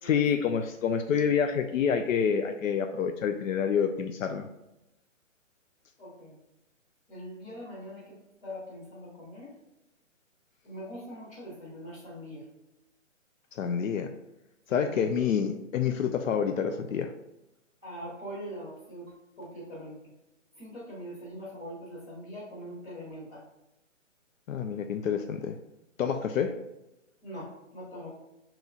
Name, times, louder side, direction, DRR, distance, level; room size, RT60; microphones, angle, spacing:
voice 1, 0.0-4.5 13.5-14.1 14.7-17.1 24.5-25.6 26.0-26.6, left 7 dB, 85° left, 6 dB, 0.5 m, -28 dB
voice 2, 6.0-6.4 7.1-8.1 8.4-9.5 10.6-12.4 14.7-15.1 17.8-20.0 20.5-23.4 27.2-28.1, equal, 40° left, -5 dB, 1.2 m, -42 dB
5.1 x 3.1 x 2.3 m, 0.92 s
hypercardioid pair, 175°, 38 cm